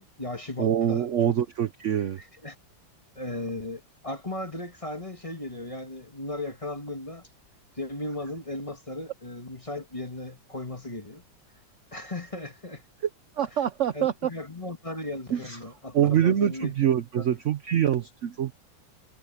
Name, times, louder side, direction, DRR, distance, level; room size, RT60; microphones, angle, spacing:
voice 1, 0.0-1.4 2.2-2.6 3.1-7.3 7.8-11.2 11.9-12.8 13.9-16.7 17.2-17.4, left 2 dB, 20° left, 1.8 m, -36 dB
voice 2, 0.6-2.2 13.4-14.3 15.3-15.6 15.9-18.5, right 10 dB, 65° right, 0.7 m, -25 dB
omnidirectional pair, 2.0 m